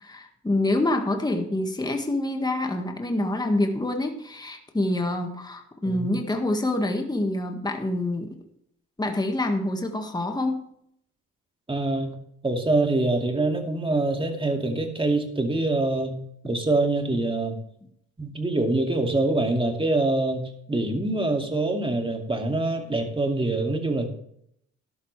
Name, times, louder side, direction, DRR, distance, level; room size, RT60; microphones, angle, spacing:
voice 1, 0.0-8.4 9.0-10.7 16.4-16.5, left 1 dB, 15° left, 4 dB, 1.8 m, -26 dB
voice 2, 11.7-12.2 12.4-17.6 18.2-24.1, right 2 dB, 15° right, 4 dB, 2.5 m, -25 dB
13.0 x 11.5 x 3.4 m, 0.70 s
cardioid pair, 90°, 30 cm